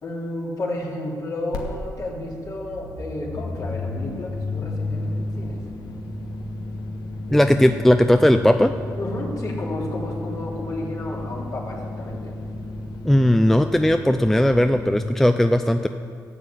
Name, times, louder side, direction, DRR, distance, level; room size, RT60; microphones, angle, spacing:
voice 1, 0.0-5.6 9.0-12.3, left 1 dB, 50° left, -3 dB, 3.1 m, -31 dB
sound 1, 1.5-1.6 1.9-15.0, left 2 dB, 65° left, 1.5 m, -32 dB
voice 2, 7.3-8.7 13.0-15.9, left 1 dB, 5° left, 8 dB, 0.4 m, -17 dB
11.0 x 7.4 x 8.5 m, 2.2 s
cardioid pair, 70°, 8 cm